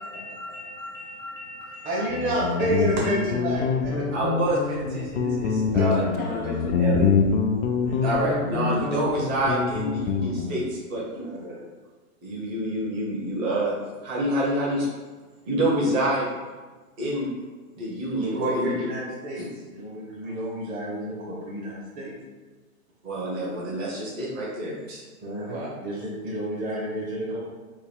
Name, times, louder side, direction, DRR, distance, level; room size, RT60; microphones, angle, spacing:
voice 1, 0.0-2.6 2.8-3.0, left 1 dB, 30° left, -4 dB, 0.6 m, -40 dB
voice 2, 1.8-4.1 5.7-5.9 7.9-8.0 8.6-8.8 11.2-11.6 18.2-19.4 19.7-22.1 25.2-27.4, right 1 dB, 20° right, -4 dB, 0.7 m, -29 dB
Guitar, 2.1-10.6, left 5 dB, 70° left, 0.6 m, -25 dB
voice 3, 4.1-7.3 8.0-11.2 12.2-13.8 14.0-14.9 15.5-16.3 17.0-17.3 17.8-18.7 19.4-19.5 23.0-25.0 25.5-25.7, right 1 dB, 60° right, -5 dB, 1.4 m, -27 dB
3.7 x 2.2 x 3.4 m, 1.3 s
hypercardioid pair, 140°, 45 cm